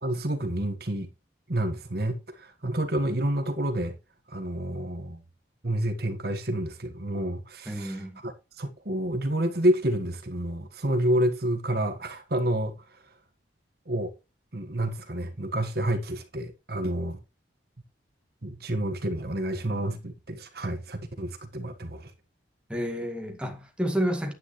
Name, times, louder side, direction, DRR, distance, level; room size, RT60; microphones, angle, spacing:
voice 1, 0.0-1.1 1.5-3.9 4.3-5.2 5.6-12.7 13.9-14.1 14.5-17.2 18.4-22.1, right 1 dB, 55° right, 1.6 m, -29 dB
voice 2, 7.7-8.2 22.7-24.3, equal, 5° right, 2.0 m, -30 dB
9.8 x 9.7 x 3.2 m
head